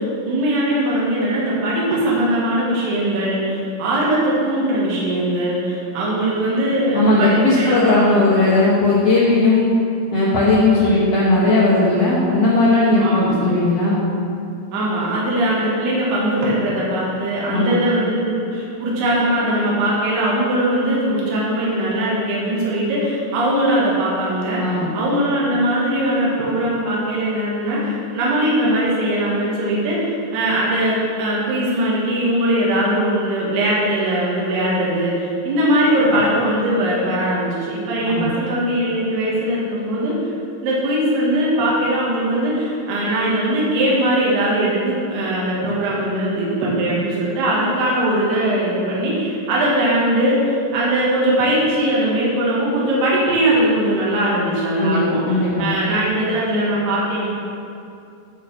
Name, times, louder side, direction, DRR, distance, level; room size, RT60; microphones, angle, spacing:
voice 1, 0.0-8.3 10.8-11.2 13.0-13.4 14.7-40.1 40.6-57.3, right 1 dB, 85° right, -5 dB, 3.7 m, -20 dB
voice 2, 6.9-9.7 10.1-14.0 17.5-17.8 24.6-24.9 38.1-38.3 54.8-55.7, left 2 dB, 65° left, -7 dB, 1.6 m, -17 dB
13.0 x 4.5 x 6.1 m, 2.5 s
omnidirectional pair, 4.6 m